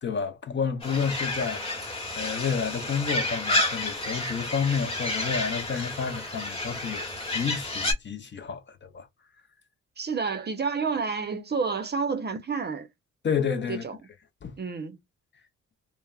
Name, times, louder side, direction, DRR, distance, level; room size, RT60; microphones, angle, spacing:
voice 1, 0.0-9.1 13.2-13.8 14.4-14.5, left 6 dB, 40° left, 0.6 m, -30 dB
sound 1, 0.8-7.9, left 2 dB, 20° left, 1.0 m, -30 dB
voice 2, 10.0-12.9 13.7-14.0 14.6-15.0, right 5 dB, 35° right, 0.6 m, -29 dB
3.2 x 2.0 x 2.3 m
cardioid pair, 105°, 30 cm